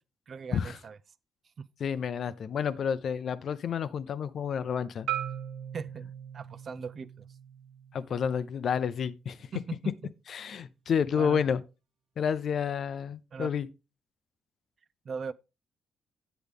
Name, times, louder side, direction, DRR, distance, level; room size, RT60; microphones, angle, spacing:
voice 1, 0.3-1.0 1.6-1.7 5.7-7.3 9.5-9.6 10.0-10.1 11.2-11.4 13.3-13.5 15.0-15.3, right 5 dB, 50° right, 0.5 m, -39 dB
voice 2, 1.8-5.1 7.9-9.5 10.3-11.6 12.2-13.7, left 7 dB, 60° left, 0.6 m, -30 dB
Marimba xylophone, 5.1-9.2, right 11 dB, 75° right, 1.1 m, -40 dB
8.3 x 7.8 x 3.5 m
cardioid pair, 90°, 0 cm